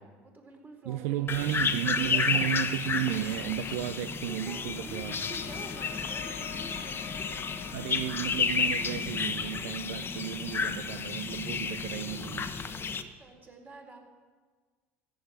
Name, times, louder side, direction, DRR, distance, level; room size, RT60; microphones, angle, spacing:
voice 1, 0.0-2.3 4.3-7.9 12.6-14.0, right 2 dB, 25° right, 1 dB, 4.4 m, -48 dB
voice 2, 0.9-5.2 7.7-12.5, right 12 dB, 75° right, 11 dB, 0.6 m, -33 dB
sound 1, 1.3-13.0, left 5 dB, 30° left, 1.1 m, -32 dB
sound 2, 3.1-12.3, left 8 dB, 75° left, 1.5 m, -48 dB
14.5 x 7.8 x 9.3 m, 1.5 s
hypercardioid pair, 80°, 7 cm